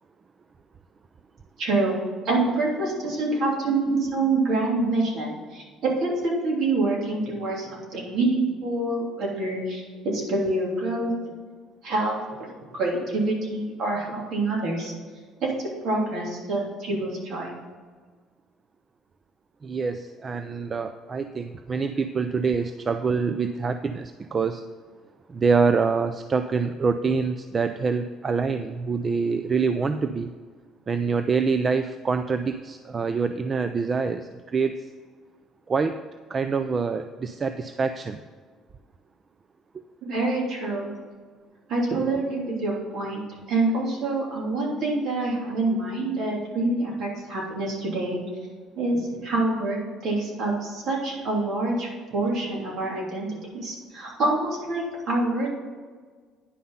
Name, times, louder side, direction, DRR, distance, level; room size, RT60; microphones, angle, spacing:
voice 1, 1.6-9.8 10.1-11.1 11.8-12.2 12.7-14.9 15.4-15.5 15.8-17.5 40.0-40.9 41.7-43.2 43.5-48.2 48.8-55.5, right 2 dB, 55° right, -2 dB, 3.1 m, -26 dB
voice 2, 19.6-24.6 25.3-30.3 30.9-34.7 35.7-35.9 36.3-38.2, right 5 dB, 25° right, 9 dB, 0.4 m, -25 dB
10.0 x 5.7 x 5.5 m, 1.5 s
cardioid pair, 130°, 0 cm